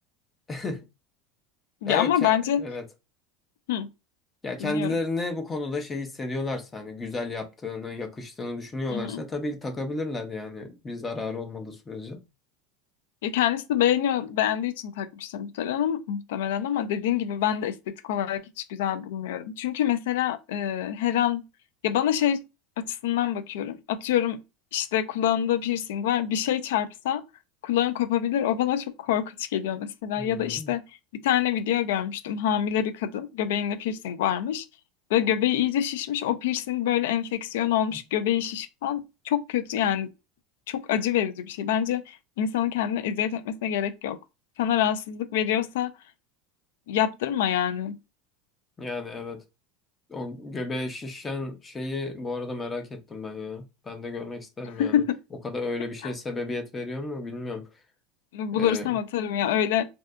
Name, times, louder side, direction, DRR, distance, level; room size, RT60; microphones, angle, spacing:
voice 1, 0.5-0.8 1.9-2.3 2.6-2.8 4.4-12.2 30.2-30.7 48.8-49.4 50.1-55.0 55.4-57.7 58.5-58.9, left 2 dB, 15° left, 0.5 m, -33 dB
voice 2, 1.8-2.6 3.7-3.9 4.6-5.0 8.9-9.2 13.2-17.7 18.0-18.4 18.7-21.4 21.8-22.4 22.8-24.4 24.7-27.2 27.6-30.8 31.1-34.6 35.1-40.1 40.7-44.2 44.6-45.9 46.9-48.0 54.8-55.2 58.3-59.8, left 10 dB, 85° left, 0.4 m, -26 dB
2.7 x 2.3 x 2.2 m
supercardioid pair, 140°, 0 cm